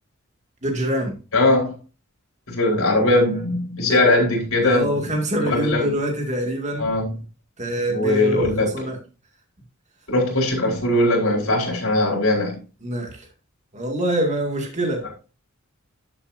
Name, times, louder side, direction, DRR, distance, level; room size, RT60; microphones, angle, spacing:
voice 1, 0.6-1.1 3.8-4.1 4.6-6.9 7.6-9.0 12.8-13.3 13.7-15.0, right 1 dB, 35° right, 2.1 m, -25 dB
voice 2, 1.3-1.7 2.5-4.9 5.4-5.9 6.8-7.1 7.9-8.7 10.1-12.6, left 2 dB, 85° left, 4.5 m, -20 dB
12.0 x 7.2 x 2.6 m
head